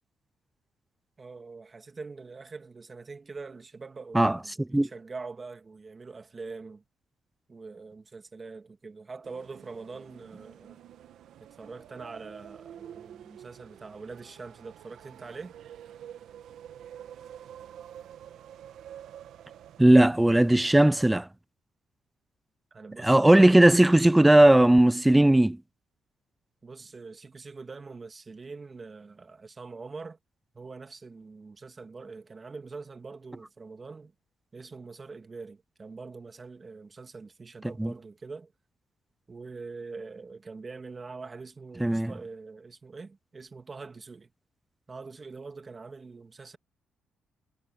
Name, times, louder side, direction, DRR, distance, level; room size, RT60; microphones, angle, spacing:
voice 1, 1.2-6.8 7.5-10.8 11.4-15.6 22.7-23.7 26.6-30.2 30.5-34.1 34.5-38.5 39.3-44.3 44.9-46.6, right 4 dB, 30° right, 2.2 m, -44 dB
sound 1, 9.2-21.1, right 10 dB, 75° right, 2.0 m, -48 dB
voice 2, 19.8-21.3 23.0-25.6 37.8-37.9 41.8-42.1, right 1 dB, 10° right, 0.4 m, -18 dB
cardioid pair, 90°, 0 cm